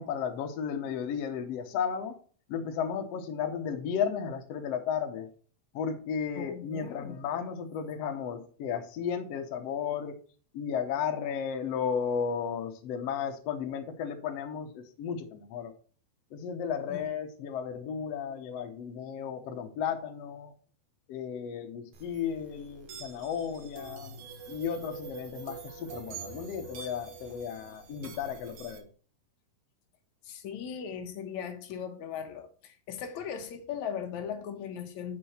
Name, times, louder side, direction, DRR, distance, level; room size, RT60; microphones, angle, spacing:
voice 1, 0.0-2.2 2.5-5.3 5.7-10.1 10.5-15.7 16.3-20.5 21.1-24.2 24.5-28.8, left 7 dB, 85° left, 1.4 m, -34 dB
voice 2, 6.4-7.5 16.9-17.0 30.2-35.2, left 7 dB, 65° left, 2.0 m, -38 dB
sound 1, 21.9-28.8, right 5 dB, 60° right, 2.3 m, -46 dB
7.5 x 6.8 x 4.4 m
omnidirectional pair, 4.5 m